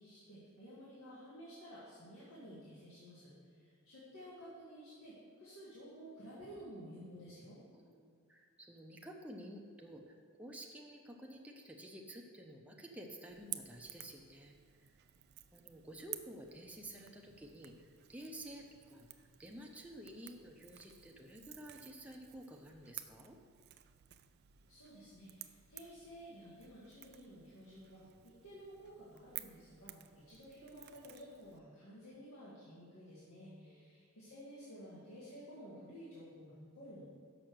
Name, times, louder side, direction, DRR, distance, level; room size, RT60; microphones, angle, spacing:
voice 1, 0.0-7.6 24.7-37.1, equal, 85° left, -9 dB, 1.8 m, -53 dB
voice 2, 3.3-3.7 7.7-14.9 15.5-23.4 33.4-33.8, right 1 dB, 5° right, 0 dB, 0.6 m, -52 dB
Crackle / Crack, 13.3-31.6, right 14 dB, 50° right, 0.4 m, -53 dB
6.3 x 6.0 x 6.5 m, 2.1 s
head